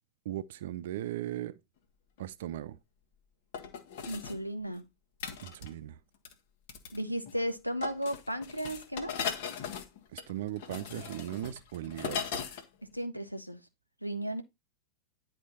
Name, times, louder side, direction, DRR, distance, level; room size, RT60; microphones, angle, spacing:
voice 1, 0.2-1.6 2.2-2.8 5.4-6.0 10.1-12.3, right 13 dB, 55° right, 0.6 m, -38 dB
sound 1, 2.2-2.3 3.5-4.4 5.2-5.8 6.2-6.3 6.7-7.0 7.3-7.5 7.8-12.7 12.9-13.0, left 7 dB, 55° left, 1.4 m, -38 dB
voice 2, 4.1-4.8 6.9-9.1 12.9-13.6 14.0-14.4, equal, 90° left, 1.1 m, -34 dB
10.0 x 4.4 x 4.2 m
figure-of-eight pair, 90°, 0 cm